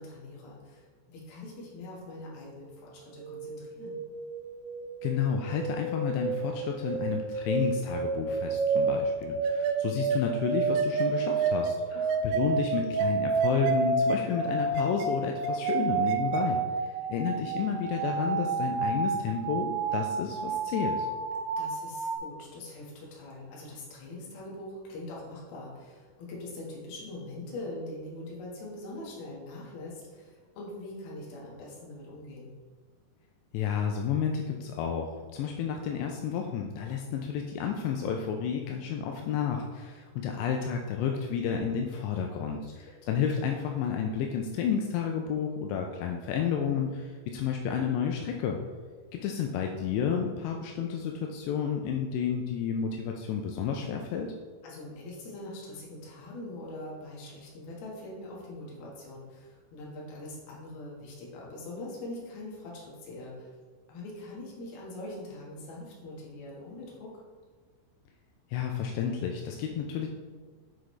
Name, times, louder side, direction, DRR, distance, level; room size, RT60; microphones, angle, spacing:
voice 1, 0.0-4.0 11.9-12.2 21.6-32.5 42.6-43.0 54.6-63.5 63.9-67.1, left 2 dB, 65° left, -4 dB, 2.8 m, -43 dB
sound 1, 3.0-22.2, right 4 dB, 90° right, 2.3 m, -30 dB
voice 2, 5.0-11.8 12.2-21.1 33.5-48.6 49.1-54.3 68.5-70.1, left 7 dB, 85° left, 2 dB, 2.5 m, -31 dB
7.7 x 4.9 x 3.1 m, 1.5 s
omnidirectional pair, 5.4 m